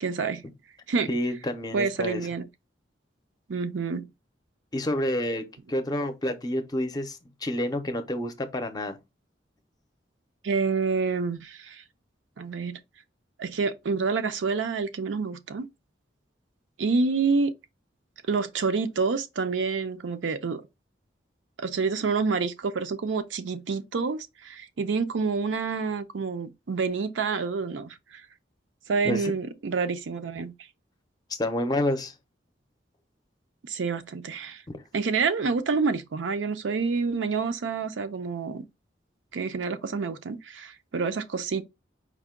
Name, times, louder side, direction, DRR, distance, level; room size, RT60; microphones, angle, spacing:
voice 1, 0.0-0.4 0.9-1.1 1.7-2.5 3.5-4.1 10.4-11.8 12.4-12.8 13.4-15.7 16.8-17.5 18.3-20.6 21.6-28.2 28.9-30.5 33.7-34.6 34.9-38.7 39.3-41.6, right 4 dB, 90° right, 0.5 m, -28 dB
voice 2, 1.1-2.2 4.7-9.0 29.0-29.3 31.4-32.1 34.7-34.8, left 1 dB, 20° left, 0.5 m, -29 dB
4.7 x 2.2 x 3.6 m
head